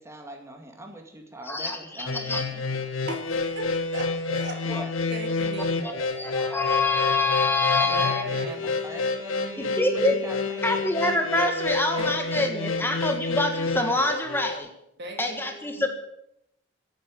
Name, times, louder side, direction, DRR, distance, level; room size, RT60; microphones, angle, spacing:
voice 1, 0.0-2.9 4.7-4.9 7.8-10.9, right 1 dB, 15° right, 2 dB, 2.2 m, -42 dB
voice 2, 1.5-2.4 4.7-4.8 5.8-8.2 9.8-10.2 10.6-14.7 15.2-15.9, left 2 dB, 10° left, 4 dB, 1.6 m, -26 dB
sound 1, 2.1-14.6, left 3 dB, 90° left, 1.8 m, -29 dB
voice 3, 3.1-4.7 5.1-5.7 6.0-6.2 7.9-8.7 12.0-13.0 15.0-15.9, right 1 dB, 60° right, 3 dB, 3.4 m, -38 dB
15.5 x 8.7 x 8.7 m, 0.79 s
head